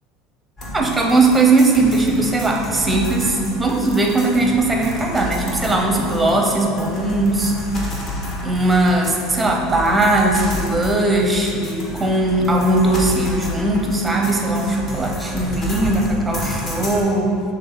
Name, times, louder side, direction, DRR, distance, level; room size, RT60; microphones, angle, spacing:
sound 1, 0.6-17.0, left 1 dB, 30° left, 1.4 m, -30 dB
voice 1, 0.7-7.5 8.4-17.4, right 2 dB, 10° right, 0 dB, 0.8 m, -19 dB
6.5 x 3.5 x 5.5 m, 2.5 s
supercardioid pair, 140°, 0 cm